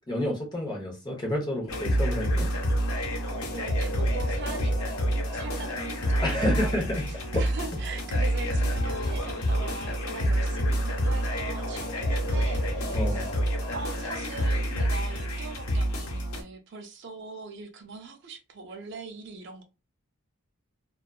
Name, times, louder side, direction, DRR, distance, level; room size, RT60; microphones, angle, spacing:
voice 1, 0.1-2.5 6.2-7.1 12.9-13.3, left 1 dB, 20° left, 0.7 m, -29 dB
sound 1, 1.7-16.4, equal, 75° left, 0.8 m, -28 dB
voice 2, 3.5-4.7 5.3-6.7 7.3-13.3 13.7-19.6, right 4 dB, 50° right, 0.4 m, -41 dB
2.7 x 2.2 x 2.3 m
head